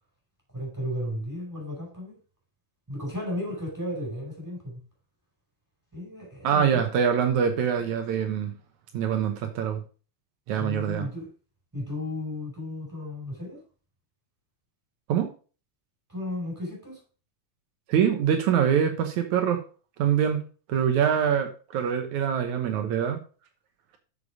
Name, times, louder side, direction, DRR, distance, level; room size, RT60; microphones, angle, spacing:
voice 1, 0.5-2.2 2.9-4.8 5.9-7.0 10.6-11.3 11.7-13.6 16.1-17.0, left 1 dB, 5° right, 5.0 m, -34 dB
voice 2, 6.4-8.6 8.9-9.8 10.5-11.1 15.1-15.3 17.9-19.6 20.0-20.4 20.7-23.2, right 8 dB, 75° right, 2.3 m, -24 dB
6.9 x 6.9 x 4.9 m
omnidirectional pair, 3.5 m